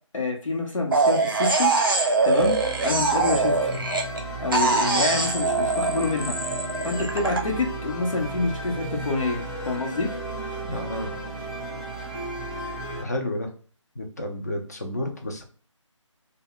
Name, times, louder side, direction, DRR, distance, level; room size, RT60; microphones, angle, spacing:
voice 1, 0.1-1.7 2.2-3.8 4.4-6.4 6.8-10.1, left 3 dB, 85° left, 0 dB, 0.8 m, -27 dB
sound 1, 0.9-4.2 4.5-7.4, right 3 dB, 45° right, 0.5 m, -23 dB
sound 2, 2.4-13.0, right 2 dB, ahead, 0.8 m, -34 dB
voice 2, 10.7-11.1 13.0-13.5 14.0-15.4, left 1 dB, 30° left, 3 dB, 0.5 m, -31 dB
2.1 x 2.1 x 3.7 m, 0.40 s
figure-of-eight pair, 165°, 16 cm